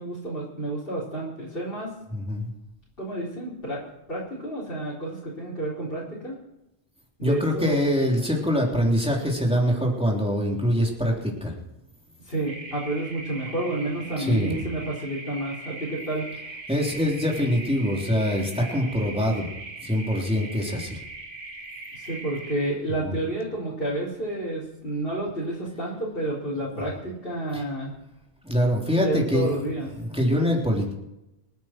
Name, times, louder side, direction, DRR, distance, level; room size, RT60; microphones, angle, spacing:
voice 1, 0.0-1.9 3.0-3.8 4.1-6.4 7.2-7.8 12.2-16.3 21.9-27.9 29.0-29.9, right 1 dB, 50° left, -7 dB, 4.4 m, -30 dB
voice 2, 2.1-2.5 7.2-11.5 14.2-14.7 16.7-19.5 19.8-21.0 23.0-23.2 26.8-26.9 28.4-29.5 29.9-30.9, equal, 5° right, -1 dB, 3.4 m, -24 dB
sound 1, 12.5-22.5, right 2 dB, 50° right, 2.0 m, -40 dB
27.0 x 9.4 x 4.5 m, 0.93 s
omnidirectional pair, 1.2 m